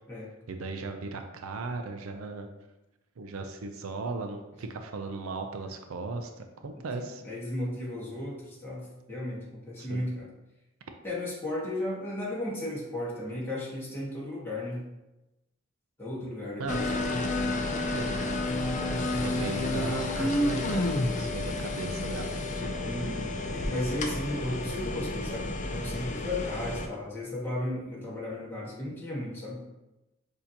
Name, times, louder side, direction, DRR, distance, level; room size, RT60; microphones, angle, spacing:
voice 1, 0.5-2.5 3.2-7.2 9.8-10.0 16.6-16.8 17.9-18.2 19.2-22.3, right 3 dB, 90° right, 6 dB, 0.5 m, -37 dB
voice 2, 6.7-10.3 11.0-14.8 16.0-17.1 22.8-29.6, left 1 dB, 10° left, -7 dB, 1.5 m, -35 dB
sound 1, 16.7-26.9, left 2 dB, 35° left, 0.5 m, -30 dB
6.4 x 2.8 x 2.8 m, 0.97 s
head